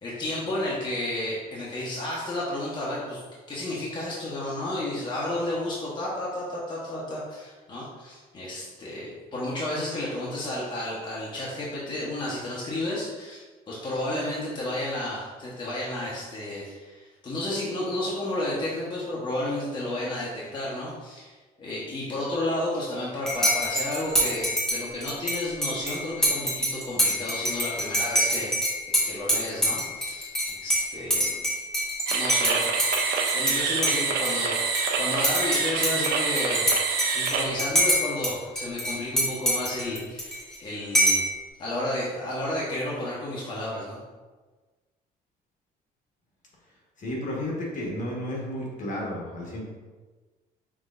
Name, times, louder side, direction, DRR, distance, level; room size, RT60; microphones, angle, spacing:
voice 1, 0.0-3.2 3.5-28.6 29.0-30.3 30.6-31.4 32.1-32.7 33.3-36.7 37.1-41.2 41.6-44.0, left 1 dB, 25° left, -6 dB, 1.1 m, -32 dB
Dishes pots and pans / Cutlery silverware / Chink clink, 23.3-33.6 33.8-34.9 35.2-38.3 38.6-40.6 40.9-41.3, equal, 5° left, 1.4 m, -25 dB
sound 1, 32.1-37.5, right 5 dB, 75° right, 0.7 m, -26 dB
voice 2, 47.0-49.7, left 1 dB, 50° left, -3 dB, 1.4 m, -32 dB
5.9 x 3.3 x 2.5 m, 1.3 s
cardioid pair, 110°, 17 cm